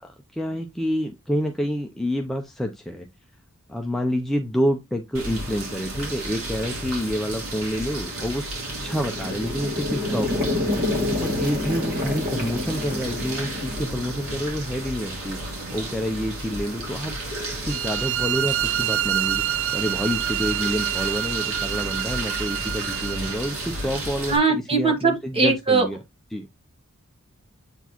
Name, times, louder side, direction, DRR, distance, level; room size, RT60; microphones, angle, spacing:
voice 1, 0.0-3.1 3.7-15.4 15.7-17.1 17.5-26.0 26.3-26.5, equal, ahead, 0.5 m, -28 dB
sound 1, 5.1-24.4, right 1 dB, 85° right, 3.3 m, -33 dB
sound 2, 8.8-14.7, left 2 dB, 40° right, 2.2 m, -28 dB
sound 3, 17.7-23.5, right 13 dB, 60° right, 0.4 m, -27 dB
voice 2, 24.3-25.9, right 4 dB, 25° right, 1.5 m, -20 dB
8.1 x 4.3 x 2.9 m
head